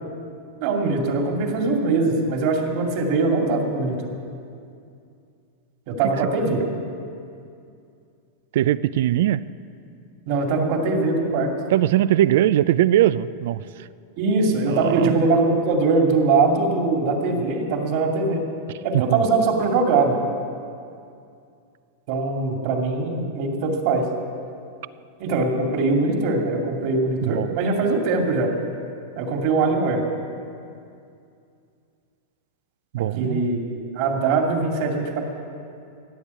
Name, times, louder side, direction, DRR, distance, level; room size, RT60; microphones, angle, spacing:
voice 1, 0.6-4.0 5.9-6.6 10.3-11.5 14.2-18.4 18.8-20.2 22.1-24.1 25.2-28.5 29.2-30.0 33.2-35.2, right 3 dB, 50° right, 2 dB, 2.4 m, -22 dB
voice 2, 8.5-9.4 11.7-13.6 14.7-15.3 18.9-19.2 27.2-27.6 32.9-33.5, right 13 dB, 65° right, 17 dB, 0.4 m, -20 dB
15.5 x 8.9 x 8.3 m, 2.5 s
supercardioid pair, 155°, 0 cm